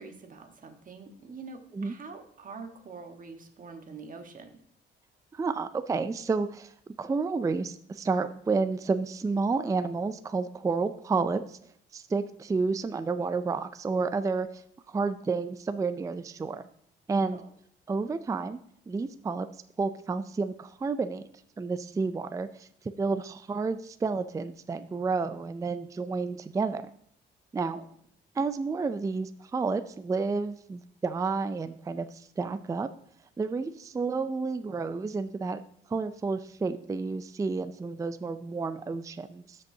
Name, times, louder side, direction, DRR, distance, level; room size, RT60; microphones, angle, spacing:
voice 1, 0.0-4.5 17.3-17.4 27.7-27.8 34.5-34.7, right 4 dB, 45° right, 5 dB, 1.3 m, -45 dB
voice 2, 5.3-6.7 7.0-11.6 11.9-14.6 14.9-16.6 17.1-17.4 17.9-18.6 18.9-19.5 19.8-21.2 21.6-22.7 23.0-26.9 27.5-27.8 28.4-32.9 33.4-35.6 35.9-39.6, right 4 dB, 15° right, 11 dB, 0.4 m, -30 dB
13.0 x 5.3 x 2.7 m, 0.67 s
cardioid pair, 90°, 20 cm